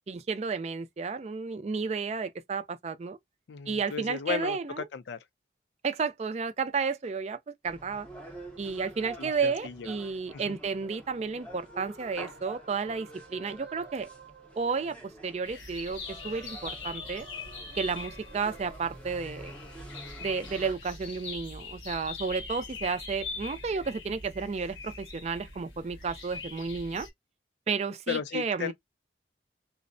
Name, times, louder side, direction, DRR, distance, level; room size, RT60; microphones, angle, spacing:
voice 1, 0.1-3.2 3.7-4.9 5.8-8.1 8.6-14.1 14.6-17.3 17.7-19.5 20.2-27.1 27.7-28.7, right 5 dB, 35° right, 0.4 m, -32 dB
voice 2, 3.5-5.2 9.2-9.9 10.3-10.6 28.1-28.7, left 7 dB, 75° left, 0.4 m, -35 dB
sound 1, 7.7-20.7, right 2 dB, 5° left, 0.6 m, -48 dB
sound 2, 10.6-15.4 15.7-20.5, right 5 dB, 65° right, 0.7 m, -53 dB
sound 3, 15.4-27.1, left 4 dB, 90° left, 0.9 m, -42 dB
2.4 x 2.1 x 2.5 m
head